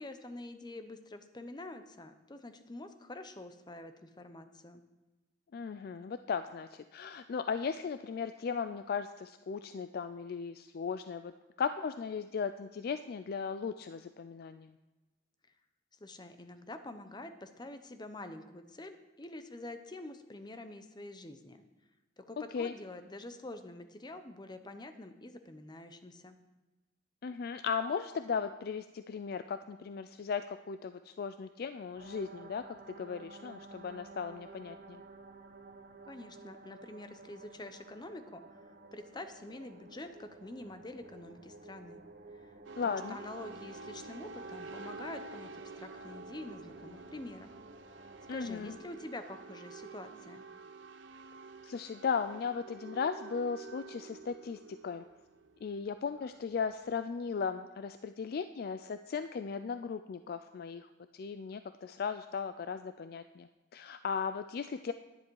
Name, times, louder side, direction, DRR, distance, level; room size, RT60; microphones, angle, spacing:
voice 1, 0.0-4.8 16.0-21.6 22.2-26.4 36.1-38.6 38.9-42.0 42.4-42.5 42.8-47.6 48.0-50.5, left 2 dB, 25° left, 9 dB, 0.7 m, -46 dB
voice 2, 5.5-11.3 11.6-14.7 22.5-22.7 27.2-35.0 42.8-43.2 48.3-48.7 51.6-55.0 55.6-64.9, left 6 dB, 55° left, 10 dB, 0.3 m, -37 dB
sound 1, 31.9-48.8, right 3 dB, 55° right, 1.2 m, -53 dB
sound 2, 42.6-56.9, right 3 dB, 90° right, 0.6 m, -49 dB
10.5 x 10.5 x 4.6 m, 1.1 s
head